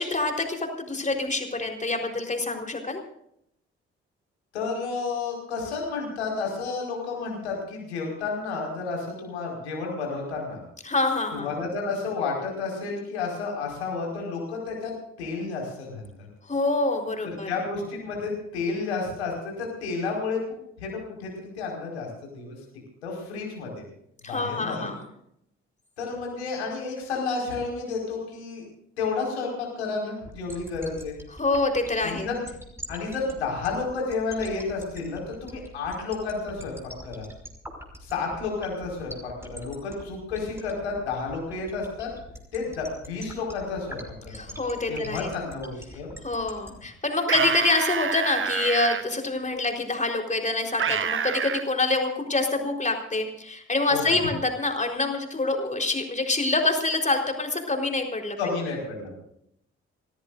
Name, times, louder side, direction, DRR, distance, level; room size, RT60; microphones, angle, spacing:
voice 1, 0.0-3.0 10.8-11.5 16.5-17.5 24.2-25.0 31.4-32.3 44.3-45.3 46.2-58.4, left 2 dB, 20° left, 3 dB, 4.1 m, -26 dB
voice 2, 4.5-10.6 11.3-14.9 15.2-16.3 17.2-20.4 20.8-22.1 22.3-22.6 23.0-23.8 24.3-24.9 26.0-28.6 29.0-31.2 32.0-32.4 32.9-36.7 37.0-37.3 38.0-42.1 42.5-44.3 44.9-46.1 53.9-54.2 58.4-59.2, left 4 dB, 80° left, -1 dB, 5.1 m, -31 dB
sound 1, 30.2-46.7, equal, 10° right, 5.6 m, -41 dB
sound 2, 47.2-49.0 50.8-51.6, right 7 dB, 40° right, 1.3 m, -27 dB
28.5 x 17.5 x 2.6 m, 0.74 s
figure-of-eight pair, 40°, 33 cm